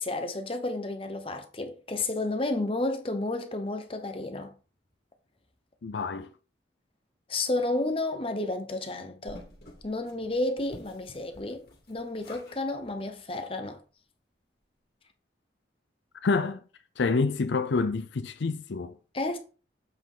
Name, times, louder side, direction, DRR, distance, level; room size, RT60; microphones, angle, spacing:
voice 1, 0.0-4.5 7.3-9.4 9.8-13.8 19.1-19.4, left 2 dB, 30° left, 0.9 m, -31 dB
voice 2, 5.8-6.3 16.2-16.6 17.0-18.9, left 4 dB, 75° left, 0.5 m, -27 dB
sound 1, 9.3-12.6 12.8-13.0 13.4-13.5 13.8-13.9, left 1 dB, 55° left, 2.4 m, -50 dB
7.9 x 5.1 x 3.8 m
head